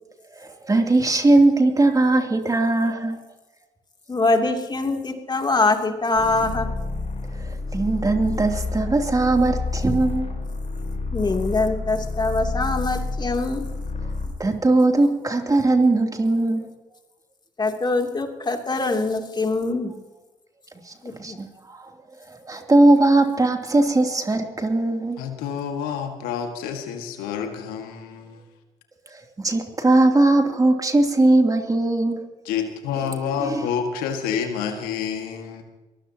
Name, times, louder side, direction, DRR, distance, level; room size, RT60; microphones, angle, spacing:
voice 1, 0.3-3.2 7.4-10.3 14.4-16.7 20.9-21.8 22.3-25.2 29.4-32.3, right 2 dB, 25° right, 4 dB, 2.9 m, -19 dB
voice 2, 4.1-6.7 11.1-13.7 17.6-19.9 21.0-21.4, left 3 dB, 30° left, 4 dB, 2.9 m, -23 dB
sound 1, 6.1-14.4, left 3 dB, 50° left, 4.9 m, -29 dB
voice 3, 25.2-28.4 32.5-35.6, left 7 dB, 80° left, 5 dB, 1.8 m, -28 dB
23.0 x 16.5 x 2.9 m, 1.1 s
hypercardioid pair, 60°, 15 cm